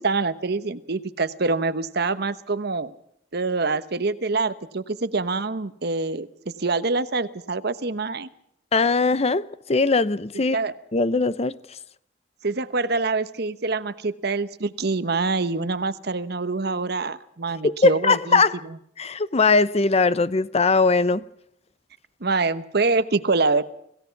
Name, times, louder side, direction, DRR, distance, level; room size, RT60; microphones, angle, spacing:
voice 1, 0.0-2.9 3.3-6.3 6.6-8.3 10.5-10.7 12.4-18.4 22.2-23.6, right 3 dB, 60° right, 1.0 m, -25 dB
voice 2, 8.7-10.6 10.9-11.6 17.6-18.6 19.0-21.2, left 3 dB, 35° left, 0.7 m, -20 dB
26.5 x 16.5 x 5.9 m
head